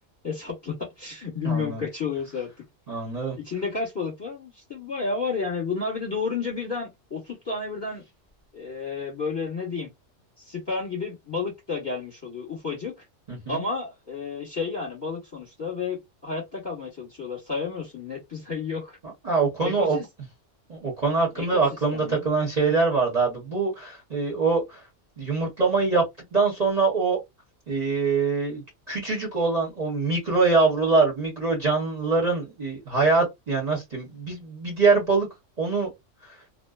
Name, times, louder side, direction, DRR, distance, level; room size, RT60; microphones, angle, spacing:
voice 1, 0.2-2.5 3.4-8.1 8.5-9.9 10.4-13.0 13.5-19.0 19.6-20.1 21.3-21.6 21.9-22.3, left 4 dB, 20° left, 1.0 m, -31 dB
voice 2, 1.4-1.8 2.9-3.4 13.3-13.6 19.2-20.0 20.7-24.8 25.2-26.0 26.3-27.2 27.7-35.3 35.6-35.9, right 4 dB, 35° right, 0.9 m, -24 dB
2.5 x 2.1 x 2.3 m
omnidirectional pair, 1.3 m